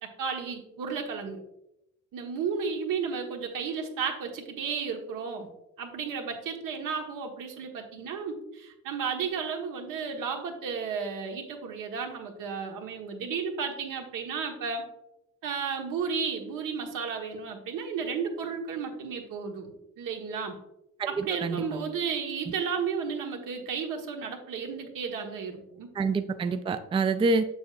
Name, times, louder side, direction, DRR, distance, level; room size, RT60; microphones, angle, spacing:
voice 1, 0.0-1.4 2.1-5.5 5.8-14.9 15.4-20.6 21.0-25.9, right 6 dB, 80° right, 2 dB, 1.3 m, -33 dB
voice 2, 21.0-21.9 26.0-27.5, right 3 dB, 15° right, 10 dB, 0.3 m, -27 dB
7.0 x 6.6 x 2.5 m, 0.86 s
cardioid pair, 100°, 32 cm